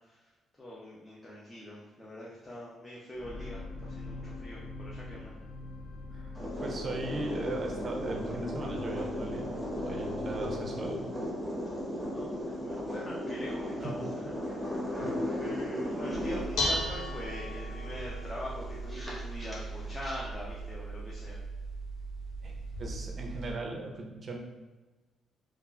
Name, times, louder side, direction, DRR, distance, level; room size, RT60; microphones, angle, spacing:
voice 1, 0.6-5.3 12.1-14.6 15.4-21.4, equal, 20° left, -5 dB, 0.5 m, -43 dB
sound 1, 3.1-15.5 16.1-16.2, left 2 dB, 45° left, 1.3 m, -45 dB
sound 2, 6.3-20.2, equal, ahead, 1.0 m, -36 dB
voice 2, 6.6-9.5 9.8-11.1 13.8-14.0 14.9-15.1 22.4-24.4, right 2 dB, 40° right, 1 dB, 0.5 m, -38 dB
Dishes pots and pans, 16.1-23.5, right 1 dB, 85° left, 0.4 m, -37 dB
3.3 x 2.4 x 2.3 m, 1.2 s
cardioid pair, 90°, 0 cm